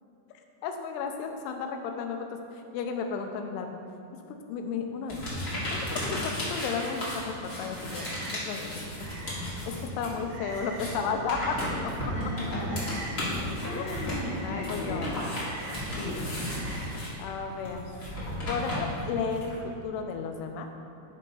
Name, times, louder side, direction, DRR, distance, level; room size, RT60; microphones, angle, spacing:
voice 1, 0.6-3.8 4.5-5.2 6.1-6.2 6.5-8.7 9.0-9.1 9.7-11.9 13.8-13.9 14.4-15.3 17.2-17.9 18.5-20.7, left 5 dB, 85° left, 4 dB, 2.8 m, -33 dB
sound 1, 5.1-10.2 10.4-19.5, left 1 dB, 25° left, 1.4 m, -34 dB
Frog, 5.6-17.0, right 3 dB, 75° right, 2.1 m, -47 dB
voice 2, 12.1-13.2 13.6-15.2 16.0-16.2, left 1 dB, 55° left, -10 dB, 2.3 m, -36 dB
9.4 x 5.4 x 5.5 m, 2.8 s
omnidirectional pair, 4.6 m